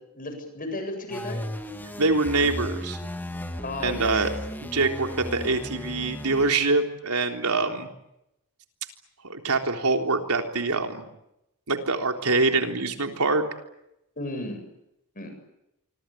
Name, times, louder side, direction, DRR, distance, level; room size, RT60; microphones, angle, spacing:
voice 1, 0.1-1.5 3.6-4.3 14.2-14.6 15.1-15.3, left 2 dB, 40° left, 7 dB, 7.8 m, -33 dB
sound 1, 1.1-6.5, equal, 10° left, 2.3 m, -35 dB
voice 2, 2.0-3.0 3.8-4.3 4.6-7.9 9.2-11.1 11.7-13.4, right 3 dB, 90° right, 4 dB, 3.7 m, -24 dB
26.5 x 24.5 x 8.7 m, 0.85 s
head